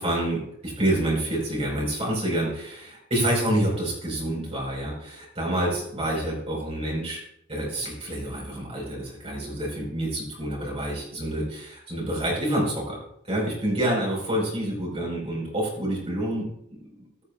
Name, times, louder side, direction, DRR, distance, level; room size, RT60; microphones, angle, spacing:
voice 1, 0.0-7.2 7.5-13.0 13.3-16.5 16.9-17.1, right 1 dB, 30° right, -4 dB, 4.8 m, -27 dB
15.0 x 11.5 x 2.4 m, 0.75 s
head